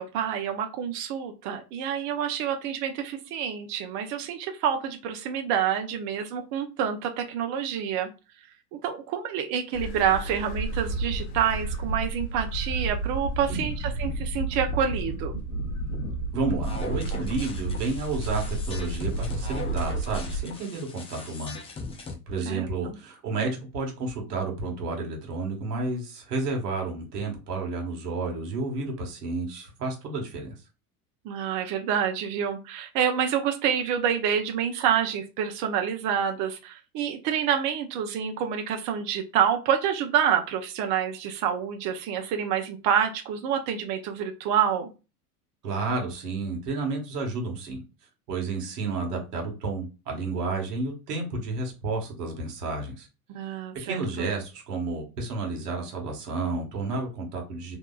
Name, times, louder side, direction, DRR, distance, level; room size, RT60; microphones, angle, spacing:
voice 1, 0.0-8.1 8.8-15.4 22.5-23.0 31.2-44.9 53.3-54.3, right 8 dB, 45° right, 5 dB, 0.5 m, -27 dB
sound 1, 9.7-20.4, right 2 dB, 75° left, 0.8 m, -31 dB
voice 2, 16.3-21.6 22.3-30.5 45.6-47.8 48.3-53.1 53.8-57.8, right 3 dB, 85° right, 1 dB, 1.1 m, -31 dB
sound 2, 16.6-22.1, left 3 dB, 15° left, 0.3 m, -40 dB
2.7 x 2.2 x 2.3 m, 0.30 s
hypercardioid pair, 95°, 46 cm